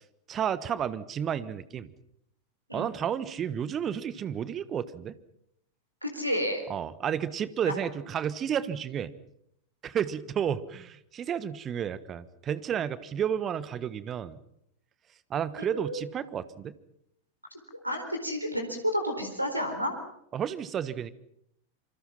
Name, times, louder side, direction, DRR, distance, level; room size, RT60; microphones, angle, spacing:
voice 1, 0.3-1.9 2.7-5.1 6.7-9.1 9.8-14.4 15.3-16.7 20.3-21.1, right 8 dB, 25° right, 16 dB, 1.4 m, -31 dB
voice 2, 6.0-6.6 15.6-16.0 17.8-19.9, equal, 85° right, 6 dB, 4.3 m, -30 dB
26.5 x 25.0 x 5.9 m, 0.74 s
figure-of-eight pair, 90°, 0 cm